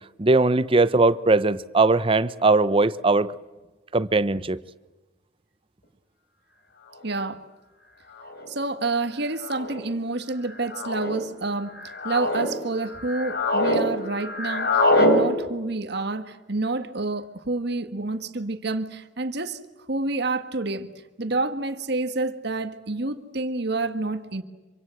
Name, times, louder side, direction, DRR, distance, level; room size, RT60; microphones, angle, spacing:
voice 1, 0.2-3.3 3.9-4.6, right 3 dB, 30° right, 0.8 m, -20 dB
voice 2, 7.0-7.4 8.5-11.7 12.0-19.6 19.9-20.9 21.2-24.4, right 3 dB, 60° right, 1.7 m, -28 dB
sound 1, 7.1-7.2 8.2-8.5 9.4-9.8 10.7-11.1 11.7-12.5 12.9-13.8 14.1-15.2, left 1 dB, 60° left, 4.6 m, -24 dB
26.0 x 25.0 x 7.8 m
head